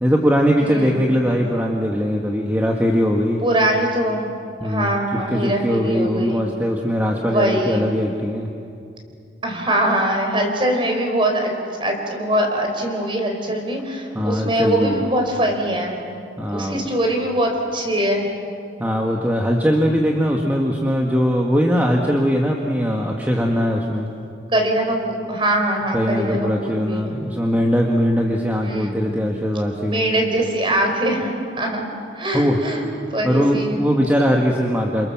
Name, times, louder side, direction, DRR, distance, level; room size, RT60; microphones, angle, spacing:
voice 1, 0.0-3.4 4.6-5.0 5.3-8.5 14.1-15.1 16.4-16.8 18.8-24.1 25.9-30.1 32.3-32.6 33.2-35.1, equal, 10° right, 0 dB, 1.7 m, -20 dB
voice 2, 0.6-1.0 3.4-4.3 4.6-6.4 7.2-7.9 9.4-11.5 11.8-16.0 16.5-18.3 24.5-27.2 28.6-29.1 29.8-32.8 33.1-33.9, right 1 dB, 25° right, 3 dB, 4.6 m, -22 dB
29.0 x 27.5 x 7.4 m, 2.4 s
head